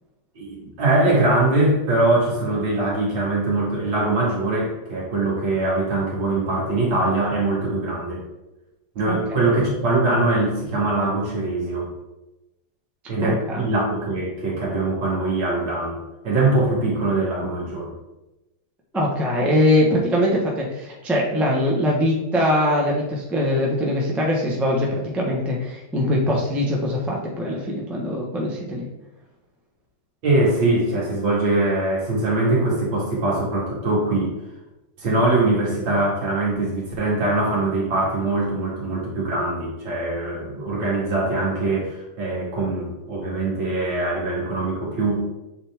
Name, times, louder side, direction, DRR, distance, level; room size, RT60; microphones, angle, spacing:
voice 1, 0.4-8.2 9.0-11.9 13.1-16.0 16.2-17.9 30.2-34.4 35.0-45.3, right 2 dB, 65° right, -4 dB, 2.7 m, -22 dB
voice 2, 13.2-13.7 18.9-28.9, left 1 dB, ahead, -3 dB, 0.6 m, -22 dB
6.8 x 4.2 x 3.5 m, 0.98 s
omnidirectional pair, 2.2 m